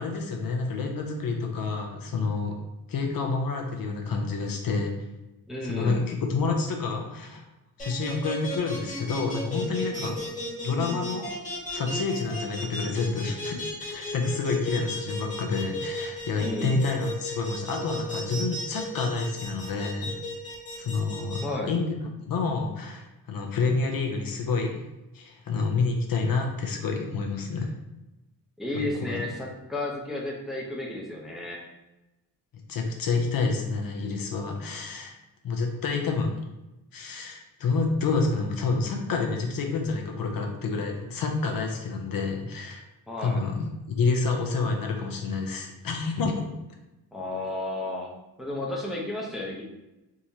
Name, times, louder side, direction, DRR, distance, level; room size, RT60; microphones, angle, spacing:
voice 1, 0.0-2.5 2.9-4.9 5.7-7.5 7.8-10.2 10.6-11.3 11.7-13.6 13.9-20.1 20.8-21.9 22.2-24.8 25.1-27.7 28.7-29.2 32.7-35.1 35.4-36.4 36.9-42.8 43.2-46.5, left 4 dB, 60° left, 2 dB, 0.6 m, -28 dB
voice 2, 5.5-6.1 16.4-16.8 21.4-21.7 28.6-31.6 43.1-43.4 47.1-48.1 48.4-49.6, left 1 dB, ahead, -3 dB, 0.6 m, -32 dB
sound 1, 7.8-21.4, left 1 dB, 20° left, 1.2 m, -35 dB
3.6 x 2.9 x 2.7 m, 0.99 s
wide cardioid pair, 130°, 40 cm